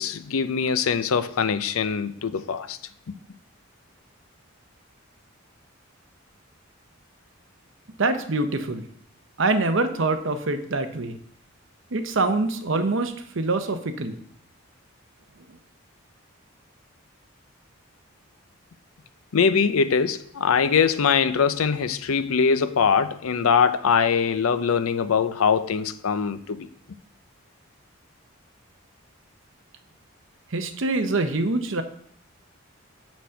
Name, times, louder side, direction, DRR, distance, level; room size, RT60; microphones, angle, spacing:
voice 1, 0.0-2.8 19.3-26.7, left 6 dB, 85° left, 0.5 m, -22 dB
voice 2, 8.0-8.8 9.4-11.2 11.9-14.2 30.5-31.8, right 2 dB, 65° right, 0.8 m, -25 dB
6.6 x 6.1 x 5.6 m
head